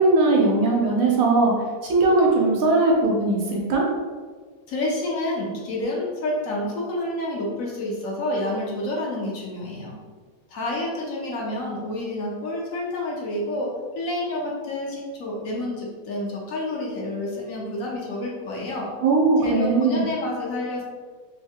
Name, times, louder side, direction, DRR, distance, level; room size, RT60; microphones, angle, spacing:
voice 1, 0.0-1.5 1.8-3.8 19.0-20.0, right 3 dB, 70° right, -2 dB, 1.1 m, -19 dB
voice 2, 4.7-10.0 10.5-18.9 19.4-20.8, left 1 dB, 65° left, -3 dB, 1.1 m, -29 dB
3.3 x 2.7 x 2.8 m, 1.5 s
omnidirectional pair, 1.6 m